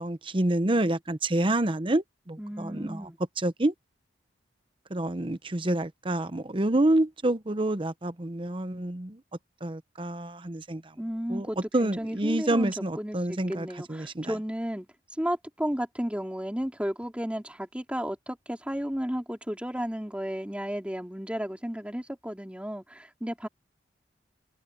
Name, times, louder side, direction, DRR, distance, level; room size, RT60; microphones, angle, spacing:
voice 1, 0.0-3.1 3.4-3.7 4.9-9.2 9.6-10.8 11.3-11.5 11.7-14.3, right 1 dB, 30° right, 0.9 m, -28 dB
voice 2, 2.4-3.2 11.0-14.9 15.2-23.5, equal, 5° right, 3.4 m, -33 dB
head